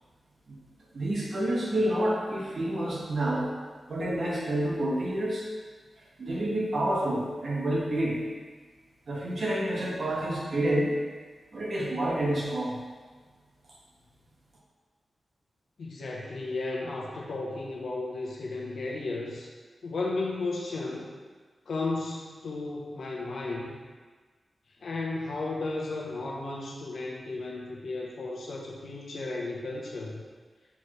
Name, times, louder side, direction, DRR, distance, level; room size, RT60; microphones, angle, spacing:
voice 1, 0.9-3.5 3.9-5.4 6.2-8.2 9.1-10.9 11.5-12.8, right 1 dB, 55° right, -5 dB, 1.4 m, -28 dB
voice 2, 15.8-19.5 19.8-21.1 21.7-23.8 24.8-30.2, left 2 dB, 75° left, -3 dB, 0.9 m, -34 dB
6.9 x 4.6 x 3.2 m, 1.4 s
wide cardioid pair, 145°, 0 cm